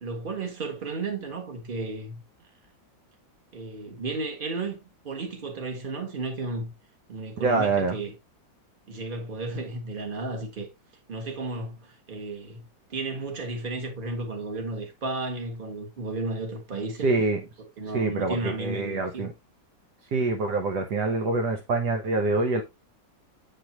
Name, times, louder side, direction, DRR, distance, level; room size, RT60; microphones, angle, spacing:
voice 1, 0.0-2.2 3.5-4.8 5.0-6.7 7.1-8.1 8.9-10.7 11.1-17.1 17.8-19.3, right 3 dB, 30° right, 1.6 m, -33 dB
voice 2, 7.4-7.9 17.0-17.4 17.9-19.3 20.1-22.6, right 3 dB, 65° right, 1.4 m, -25 dB
8.4 x 4.9 x 2.9 m
omnidirectional pair, 2.0 m